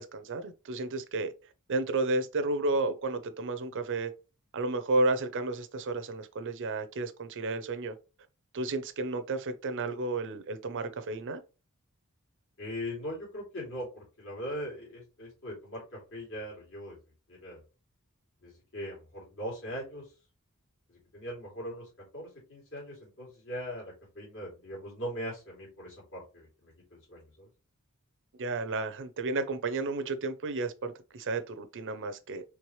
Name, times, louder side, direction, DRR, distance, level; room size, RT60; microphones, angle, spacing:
voice 1, 0.0-1.3 1.7-4.1 4.5-8.0 8.5-11.4 28.4-32.4, right 2 dB, 60° right, 0.6 m, -32 dB
voice 2, 12.6-17.0 17.3-17.6 18.4-20.1 20.9-27.5, equal, 65° left, 2.7 m, -40 dB
4.6 x 3.4 x 3.2 m
head